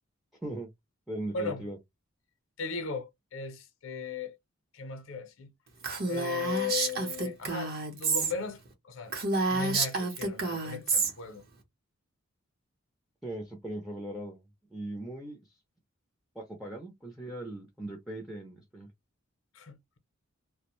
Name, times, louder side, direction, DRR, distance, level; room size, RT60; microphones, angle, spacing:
voice 1, 1.1-1.8 13.2-14.4 14.7-15.4 16.4-18.9, right 1 dB, ahead, 0.4 m, -39 dB
voice 2, 2.6-4.3 4.7-5.5 6.1-9.1 9.5-11.5 19.5-20.0, left 5 dB, 65° left, 0.6 m, -37 dB
Female speech woman speaking, 5.8-8.3 8.7-8.8 9.1-11.1, right 3 dB, 50° right, 0.8 m, -29 dB
2.4 x 2.1 x 2.9 m
head